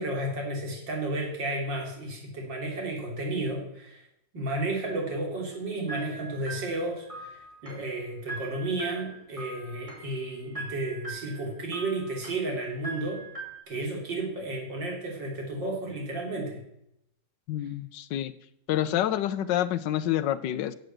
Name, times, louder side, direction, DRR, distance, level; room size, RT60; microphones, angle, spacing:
voice 1, 0.0-4.0 4.3-13.2 13.7-16.6 17.6-17.7, right 2 dB, 80° right, 0 dB, 3.7 m, -32 dB
sound 1, 5.9-13.6, right 3 dB, 15° right, 2.9 m, -42 dB
voice 2, 17.5-18.3 18.7-20.7, left 12 dB, 80° left, 12 dB, 1.3 m, -28 dB
11.0 x 8.0 x 7.9 m, 0.78 s
omnidirectional pair, 2.0 m